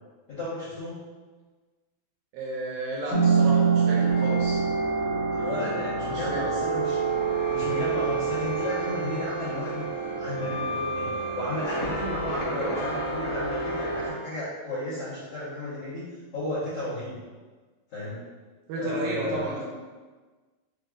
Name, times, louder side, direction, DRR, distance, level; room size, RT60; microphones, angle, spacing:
voice 1, 0.3-1.0 5.3-7.2 7.5-9.9 10.2-17.2 17.9-18.2 18.7-19.5, left 1 dB, 85° left, -12 dB, 1.3 m, -33 dB
voice 2, 2.3-4.6 5.3-5.5 6.1-6.4 18.7-19.6, right 2 dB, 80° right, -4 dB, 2.3 m, -33 dB
sound 1, 3.1-14.1, right 4 dB, 65° left, 1.8 m, -27 dB
6.2 x 2.4 x 2.3 m, 1.3 s
omnidirectional pair, 4.5 m